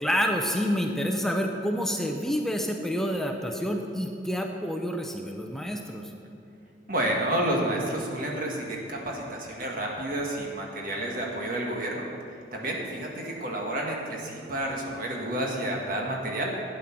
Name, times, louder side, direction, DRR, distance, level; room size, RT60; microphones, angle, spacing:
voice 1, 0.0-6.0, equal, ahead, 2 dB, 0.7 m, -28 dB
voice 2, 6.9-12.1 12.5-16.5, right 1 dB, 50° right, -1 dB, 1.6 m, -30 dB
12.5 x 9.3 x 5.9 m, 2.5 s
head